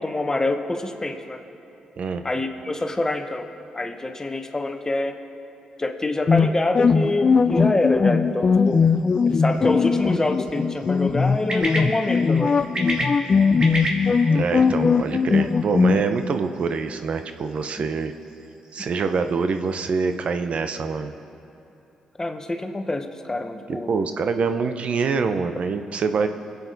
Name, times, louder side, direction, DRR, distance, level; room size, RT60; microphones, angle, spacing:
voice 1, 0.0-1.4 2.2-3.5 3.7-5.2 5.8-8.8 9.2-12.6 17.8-17.9 22.2-23.9, left 2 dB, 25° left, 6 dB, 1.2 m, -26 dB
sound 1, 6.3-16.0, left 5 dB, 45° left, 0.5 m, -19 dB
sound 2, 8.6-20.3, right 1 dB, 40° right, 2.5 m, -35 dB
voice 2, 14.3-18.1 18.7-21.1 23.9-26.3, right 5 dB, 60° right, 8 dB, 0.7 m, -25 dB
21.5 x 8.3 x 4.0 m, 2.9 s
supercardioid pair, 55°, 2 cm